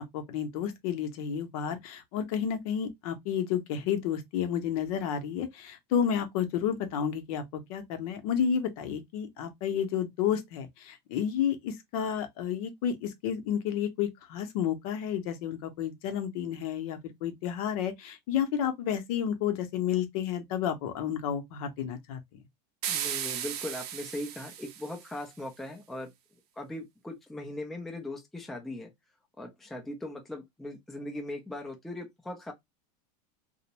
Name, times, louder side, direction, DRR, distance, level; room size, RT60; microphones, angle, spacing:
voice 1, 0.0-22.2, left 8 dB, 65° left, 0.7 m, -31 dB
sound 1, 22.8-25.2, right 9 dB, 70° right, 0.6 m, -36 dB
voice 2, 22.9-26.1 26.6-28.9 29.4-32.5, left 1 dB, ahead, 0.4 m, -39 dB
2.5 x 2.0 x 2.9 m
supercardioid pair, 145°, 21 cm